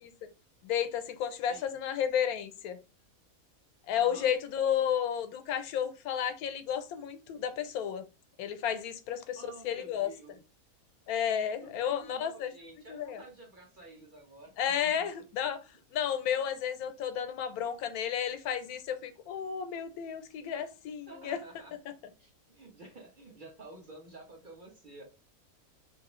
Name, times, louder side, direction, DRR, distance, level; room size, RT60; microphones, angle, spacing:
voice 1, 0.6-2.8 3.9-8.0 8.4-10.1 11.1-12.5 12.9-13.2 14.6-15.6 15.9-21.4, left 9 dB, 85° left, 1.1 m, -32 dB
voice 2, 1.4-1.8 3.9-4.3 9.3-10.4 11.5-15.1 16.4-16.5 21.1-21.7 22.2-25.0, right 2 dB, 45° right, 0.7 m, -51 dB
3.0 x 2.6 x 3.0 m
omnidirectional pair, 1.5 m